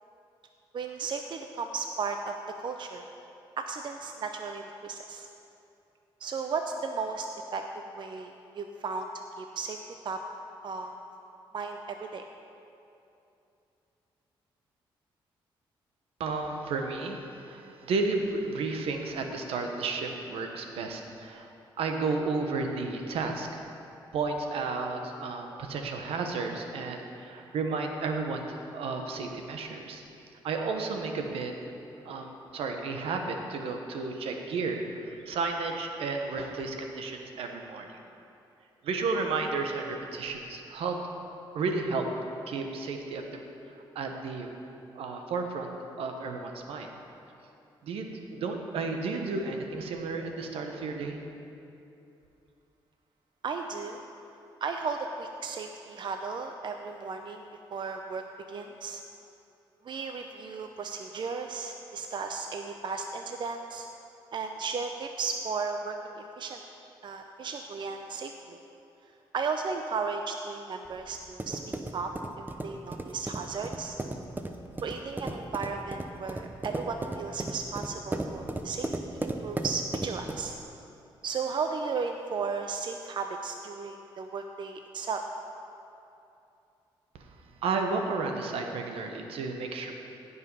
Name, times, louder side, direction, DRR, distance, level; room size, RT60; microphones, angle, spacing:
voice 1, 0.7-3.1 3.6-5.3 6.2-7.3 7.5-7.6 7.9-9.8 10.0-10.2 10.6-10.9 11.5-12.2 53.4-54.0 54.6-59.0 59.8-63.9 64.3-66.6 67.0-68.6 69.3-71.6 71.9-72.1 72.6-74.0 74.8-80.6 81.2-85.2, right 5 dB, 55° right, 5 dB, 0.6 m, -35 dB
voice 2, 16.2-21.5 21.8-23.6 24.1-30.0 30.4-31.5 32.0-38.0 38.8-41.0 41.5-42.1 42.5-43.2 43.9-44.5 44.9-45.7 46.0-46.9 47.8-51.2 87.6-89.9, right 4 dB, 80° right, 4 dB, 1.1 m, -32 dB
sound 1, 70.8-80.6, right 2 dB, 20° right, 0.8 m, -36 dB
16.0 x 5.5 x 5.4 m, 2.7 s
cardioid pair, 75°, 10 cm